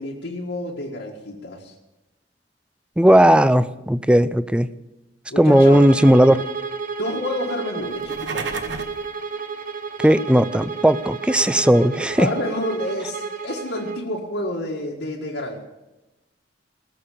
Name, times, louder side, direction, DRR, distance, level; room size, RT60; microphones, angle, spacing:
voice 1, 0.0-1.7 5.3-5.9 7.0-8.5 12.2-15.6, left 1 dB, 80° left, -3 dB, 1.9 m, -29 dB
voice 2, 3.0-4.7 5.4-6.4 10.0-12.3, right 1 dB, 5° right, 15 dB, 0.4 m, -16 dB
Bowed string instrument, 5.5-14.1, right 5 dB, 50° right, 0.9 m, -32 dB
sound 1, 7.9-9.0, right 4 dB, 90° right, 1.1 m, -31 dB
20.0 x 7.0 x 8.4 m, 1.0 s
head